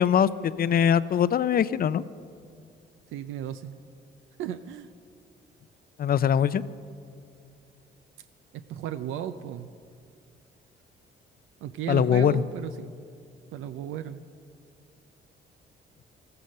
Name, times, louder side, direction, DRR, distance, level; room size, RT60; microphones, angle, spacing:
voice 1, 0.0-2.0 6.0-6.6 11.9-12.4, left 8 dB, 50° left, 16 dB, 0.5 m, -22 dB
voice 2, 3.1-3.7 4.4-4.9 8.5-9.7 11.6-12.9 13.5-14.2, right 10 dB, 85° right, 10 dB, 0.5 m, -35 dB
14.0 x 14.0 x 6.6 m, 2.4 s
cardioid pair, 90°, 20 cm